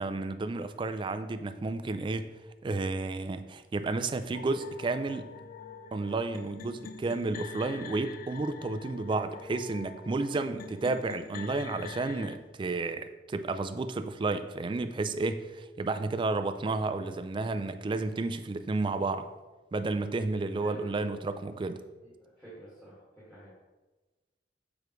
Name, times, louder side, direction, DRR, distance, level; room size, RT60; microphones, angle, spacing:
voice 1, 0.0-2.3 2.6-5.3 5.9-19.3 19.7-21.8, right 3 dB, 30° right, 9 dB, 0.3 m, -32 dB
sound 1, 4.3-12.4, left 5 dB, 50° left, 0.4 m, -45 dB
voice 2, 20.3-21.1 22.0-23.5, right 1 dB, 5° left, -9 dB, 1.8 m, -50 dB
6.7 x 4.7 x 3.1 m, 1.2 s
head